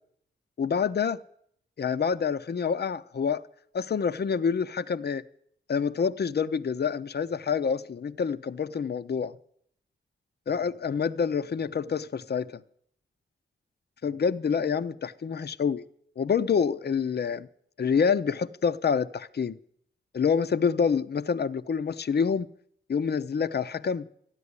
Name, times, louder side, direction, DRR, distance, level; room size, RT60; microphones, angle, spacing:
voice 1, 0.6-1.2 1.8-3.4 3.7-5.2 5.7-9.3 10.5-12.5 14.0-15.8 16.2-17.5 17.8-19.6 20.1-22.5 22.9-24.1, left 6 dB, 50° left, 0.6 m, -27 dB
13.0 x 10.5 x 9.6 m
cardioid pair, 50°, 21 cm